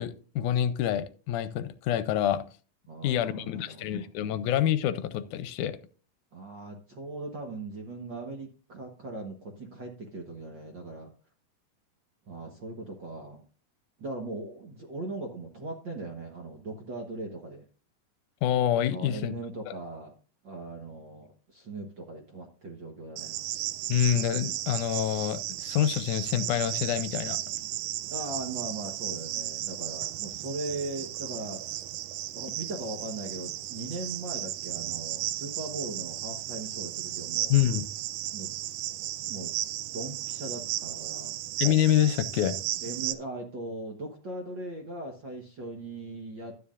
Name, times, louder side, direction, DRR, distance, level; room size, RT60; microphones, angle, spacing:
voice 1, 0.0-2.4 3.0-5.8 18.4-19.3 19.7-19.8 23.9-27.4 37.5-37.9 41.6-42.6, left 11 dB, 80° left, 13 dB, 2.0 m, -27 dB
voice 2, 2.9-4.1 6.3-11.1 12.3-13.4 14.0-17.7 18.9-20.1 20.4-23.4 28.1-31.8 32.3-37.6 38.3-38.5 39.3-39.5 39.9-41.3 42.8-46.6, right 2 dB, 55° right, 2 dB, 1.4 m, -39 dB
Cricket, 23.2-43.1, right 14 dB, 85° right, 2.1 m, -35 dB
12.5 x 9.7 x 2.5 m, 0.38 s
omnidirectional pair, 3.6 m